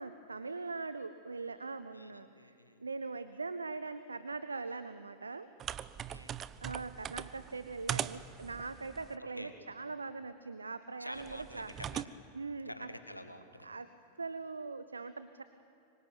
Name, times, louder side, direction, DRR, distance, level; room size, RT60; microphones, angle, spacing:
voice 1, 0.0-5.5 6.6-11.7 12.3-12.9 13.6-13.9 14.2-15.4, right 3 dB, 80° right, 13 dB, 0.8 m, -41 dB
voice 2, 1.9-2.9 6.1-6.4 9.4-9.5 11.0-12.0 12.7-13.7, equal, 90° left, 7 dB, 1.8 m, -48 dB
sound 1, 5.6-9.2 11.2-12.1, right 10 dB, 30° right, 0.7 m, -41 dB
26.0 x 23.5 x 9.2 m, 2.6 s
figure-of-eight pair, 90°, 0 cm